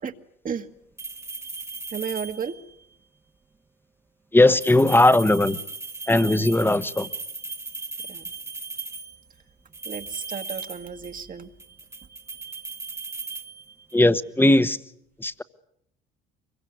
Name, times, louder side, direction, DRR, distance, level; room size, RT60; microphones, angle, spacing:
sound 1, 1.0-2.7 4.5-9.2 9.7-11.3 11.6-14.1, right 3 dB, 10° right, 1.3 m, -37 dB
voice 1, 1.9-2.6 8.1-8.2 9.9-11.5, right 6 dB, 40° right, 1.8 m, -33 dB
voice 2, 4.3-5.6 6.1-7.1 13.9-14.8 15.2-15.4, left 2 dB, 10° left, 1.3 m, -18 dB
24.5 x 22.5 x 9.4 m
supercardioid pair, 85°, 21 cm